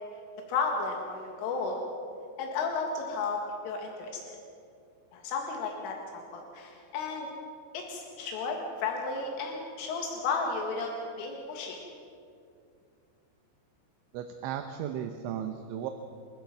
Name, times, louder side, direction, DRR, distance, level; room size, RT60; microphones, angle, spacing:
voice 1, 0.5-1.8 2.4-4.4 5.1-7.3 7.7-10.9 11.2-11.8, left 4 dB, 80° left, 1 dB, 4.4 m, -33 dB
voice 2, 14.1-15.9, right 9 dB, 75° right, 7 dB, 3.1 m, -35 dB
28.0 x 16.0 x 6.0 m, 2.4 s
omnidirectional pair, 5.7 m